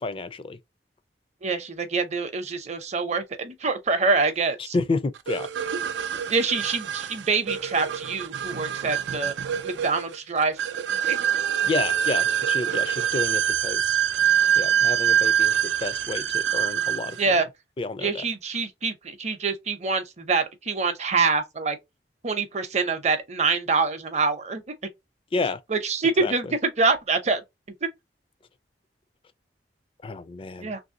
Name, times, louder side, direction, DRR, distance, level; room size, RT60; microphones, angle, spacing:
voice 1, 0.0-0.6 4.7-5.5 11.6-14.0 14.6-17.4 17.8-18.1 25.3-25.6 26.2-26.3 30.0-30.7, left 3 dB, 30° left, 0.4 m, -30 dB
voice 2, 1.4-4.7 6.3-9.3 9.6-11.2 17.2-17.5 18.0-21.8 22.2-24.6 25.7-27.4 27.8-27.9 30.6-30.8, right 4 dB, 40° right, 0.7 m, -25 dB
sound 1, 5.3-17.2, right 9 dB, 85° right, 0.4 m, -25 dB
3.1 x 2.6 x 2.6 m
head